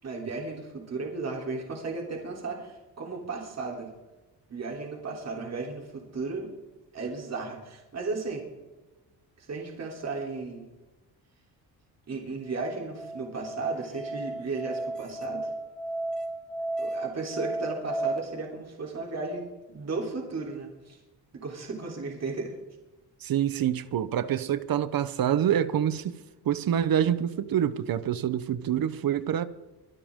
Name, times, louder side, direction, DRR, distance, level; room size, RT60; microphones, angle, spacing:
voice 1, 0.0-3.9 4.5-6.5 6.9-8.5 9.4-10.7 12.1-15.5 16.8-21.0 21.3-22.6, right 3 dB, 40° right, 3.6 m, -35 dB
Musical instrument, 12.5-18.2, right 2 dB, ahead, 1.9 m, -34 dB
voice 2, 23.2-26.2 26.4-29.4, right 10 dB, 60° right, 1.0 m, -26 dB
23.5 x 12.5 x 3.7 m
cardioid pair, 110°, 39 cm